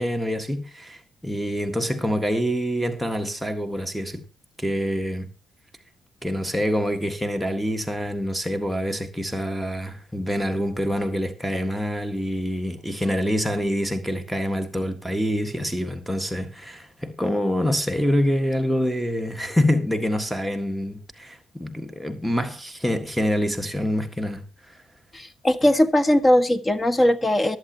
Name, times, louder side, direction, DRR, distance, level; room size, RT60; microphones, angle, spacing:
voice 1, 0.0-4.2 4.6-5.3 6.2-24.8, equal, ahead, 1.7 m, -26 dB
voice 2, 25.1-27.6, left 1 dB, 25° left, 1.7 m, -19 dB
23.0 x 8.0 x 2.9 m
supercardioid pair, 65°, 0 cm